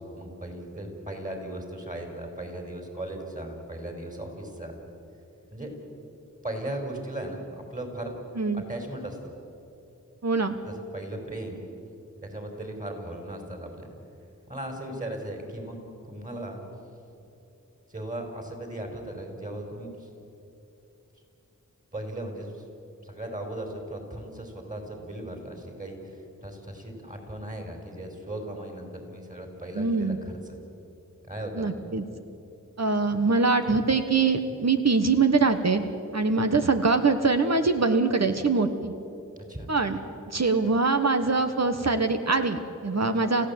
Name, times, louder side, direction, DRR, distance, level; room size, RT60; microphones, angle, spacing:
voice 1, 0.0-4.7 5.5-5.7 6.4-8.1 8.5-9.2 10.6-11.6 12.2-13.9 14.5-15.8 16.1-16.6 17.9-20.1 21.9-22.6 23.0-30.6 31.3-31.8 39.4-39.7, right 1 dB, 25° right, 3 dB, 5.3 m, -37 dB
voice 2, 10.2-10.6 29.7-30.2 31.6-32.0 32.8-35.8 36.1-38.9 39.7-40.0 40.3-43.5, right 4 dB, 55° right, 7 dB, 1.4 m, -23 dB
28.5 x 15.5 x 8.8 m, 2.9 s
wide cardioid pair, 65°, 31 cm